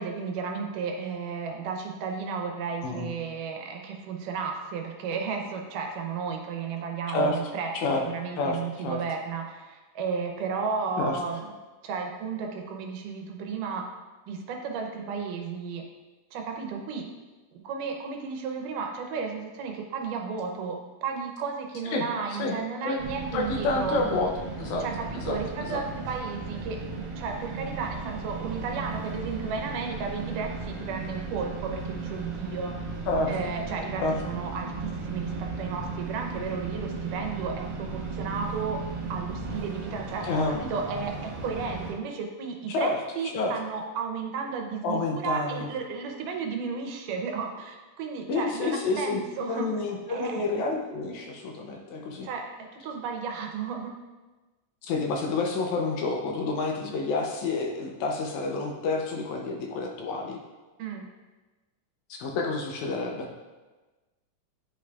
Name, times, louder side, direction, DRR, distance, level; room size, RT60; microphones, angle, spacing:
voice 1, 0.0-7.7 8.0-11.5 11.8-13.9 14.3-15.8 16.3-17.1 17.5-24.0 24.8-26.8 27.2-32.8 33.3-38.8 39.1-49.7 50.1-50.5 52.2-53.9 60.8-61.1, right 5 dB, 85° right, 3 dB, 2.3 m, -33 dB
voice 2, 2.8-3.1 7.1-7.4 7.7-8.0 8.4-8.6 8.8-9.0 11.0-11.2 21.9-22.1 22.4-22.6 22.8-23.0 23.3-24.3 24.6-24.8 25.2-25.8 33.1-33.3 34.0-34.1 40.2-40.6 42.7-43.0 43.2-43.5 44.8-45.7 48.3-49.2 49.5-52.3 54.8-60.4 62.2-63.3, left 3 dB, 75° left, 1 dB, 1.9 m, -29 dB
sound 1, 23.0-41.9, right 4 dB, 60° right, 1.5 m, -36 dB
9.8 x 5.0 x 2.3 m, 1.2 s
omnidirectional pair, 3.6 m